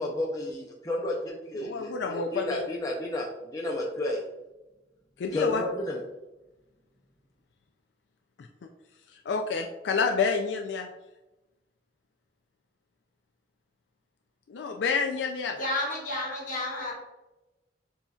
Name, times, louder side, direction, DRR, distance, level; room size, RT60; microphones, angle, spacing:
voice 1, 0.0-4.2 5.3-6.0, left 1 dB, 20° left, -2 dB, 0.5 m, -32 dB
voice 2, 1.6-2.6 5.2-5.6 9.3-10.9 14.5-15.6, left 5 dB, 80° left, 3 dB, 0.4 m, -28 dB
voice 3, 15.6-16.9, left 1 dB, 50° left, -1 dB, 1.2 m, -31 dB
7.0 x 2.7 x 2.3 m, 1.0 s
head